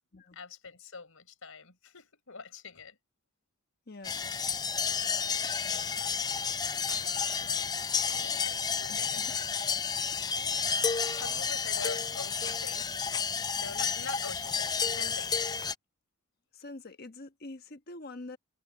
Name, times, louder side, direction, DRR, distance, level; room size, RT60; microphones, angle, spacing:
voice 1, 0.3-3.0 5.5-5.9 7.4-7.8 8.1-9.5 10.1-10.8 11.0-13.1 13.6-15.5, left 4 dB, 70° left, 5.1 m, -45 dB
voice 2, 3.9-4.2 8.9-9.3 16.5-18.4, left 2 dB, 45° left, 1.3 m, -45 dB
sound 1, 4.0-15.7, left 6 dB, 20° left, 0.4 m, -31 dB
sound 2, 6.8-7.9, right 9 dB, 65° right, 2.5 m, -53 dB
head